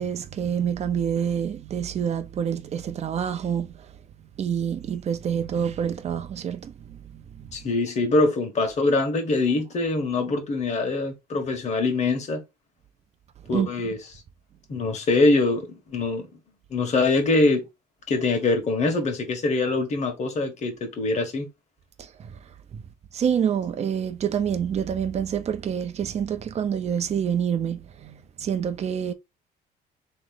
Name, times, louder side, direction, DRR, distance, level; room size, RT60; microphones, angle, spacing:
voice 1, 0.0-4.0 4.4-7.5 13.5-13.7 22.0-22.8 23.1-29.1, right 8 dB, 40° right, 0.7 m, -27 dB
voice 2, 7.5-12.4 13.5-14.0 14.7-16.3 16.7-17.6 18.1-21.5, left 3 dB, 40° left, 1.5 m, -23 dB
3.7 x 3.2 x 3.8 m
cardioid pair, 110°, 17 cm